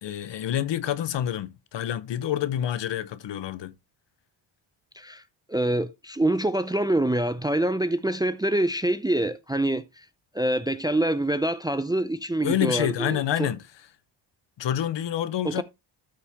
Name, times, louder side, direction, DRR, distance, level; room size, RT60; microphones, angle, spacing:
voice 1, 0.0-3.7 12.4-13.6 14.6-15.6, left 11 dB, 65° left, 1.0 m, -27 dB
voice 2, 5.5-9.8 10.3-13.5 15.4-15.6, right 1 dB, 10° right, 0.4 m, -25 dB
13.0 x 4.3 x 3.5 m
cardioid pair, 100°, 48 cm